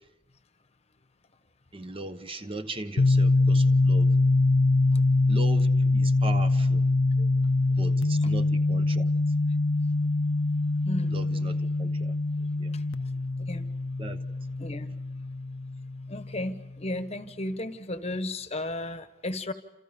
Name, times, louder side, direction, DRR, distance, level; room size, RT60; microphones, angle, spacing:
voice 1, 1.7-4.1 5.3-6.8 7.8-9.1 11.1-12.2 12.6-12.8 14.0-14.2, right 2 dB, 25° right, 1.1 m, -38 dB
sound 1, 3.0-16.6, left 2 dB, 75° left, 0.9 m, -24 dB
voice 2, 10.7-11.1 12.3-13.7 14.6-15.0 16.1-19.5, left 1 dB, 30° left, 1.2 m, -35 dB
29.0 x 28.0 x 5.3 m
head